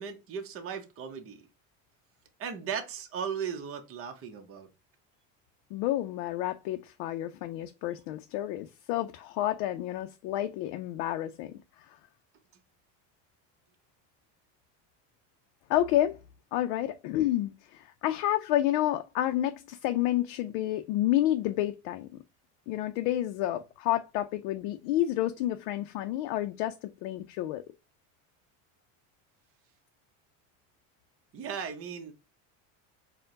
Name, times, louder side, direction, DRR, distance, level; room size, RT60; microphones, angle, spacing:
voice 1, 0.0-1.5 2.4-4.7 31.3-32.1, right 7 dB, 35° right, 0.8 m, -37 dB
voice 2, 5.7-11.5 15.7-16.2 16.5-22.1 22.7-27.6, left 13 dB, 85° left, 0.5 m, -29 dB
4.4 x 2.2 x 3.7 m
cardioid pair, 125°, 38 cm